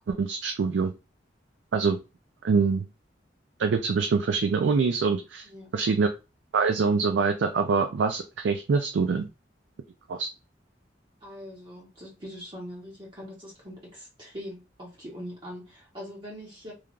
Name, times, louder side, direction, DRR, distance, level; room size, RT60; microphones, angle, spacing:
voice 1, 0.1-0.9 1.7-2.0 2.4-2.8 3.6-5.4 5.7-6.1 6.5-9.3 10.1-10.3, right 5 dB, 85° right, 0.4 m, -24 dB
voice 2, 11.2-16.7, equal, 30° right, 0.8 m, -42 dB
3.2 x 2.3 x 2.4 m
head